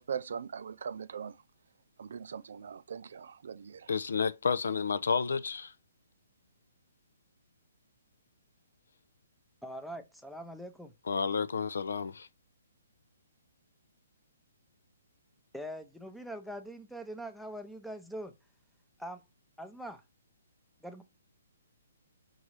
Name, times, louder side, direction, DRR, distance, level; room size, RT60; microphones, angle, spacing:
voice 1, 0.0-1.4 2.0-3.9, right 7 dB, 65° right, 0.3 m, -40 dB
voice 2, 3.9-5.7 11.1-12.3, left 5 dB, 75° left, 0.4 m, -30 dB
voice 3, 9.6-10.9 15.5-18.3 19.0-19.2 19.6-20.0 20.8-21.0, right 1 dB, ahead, 0.6 m, -42 dB
4.0 x 3.8 x 3.1 m
hypercardioid pair, 140°, 0 cm